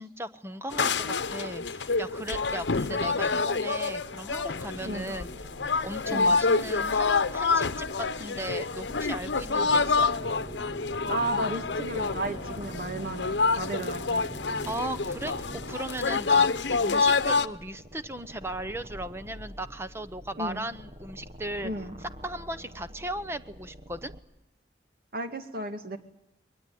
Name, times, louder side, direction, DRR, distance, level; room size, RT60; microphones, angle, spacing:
voice 1, 0.0-5.3 5.8-10.1 14.6-21.7 22.0-24.1, right 1 dB, 15° right, 11 dB, 0.8 m, -37 dB
sound 1, 0.7-17.5, left 4 dB, 90° left, 0.9 m, -27 dB
sound 2, 4.3-24.2, equal, 40° right, 1.1 m, -47 dB
sound 3, 9.7-15.7, right 1 dB, 15° left, 2.2 m, -43 dB
voice 2, 11.1-14.2 20.4-20.6 21.6-21.9 25.1-26.0, right 1 dB, 55° right, 7 dB, 2.1 m, -33 dB
22.5 x 20.0 x 9.3 m, 0.86 s
head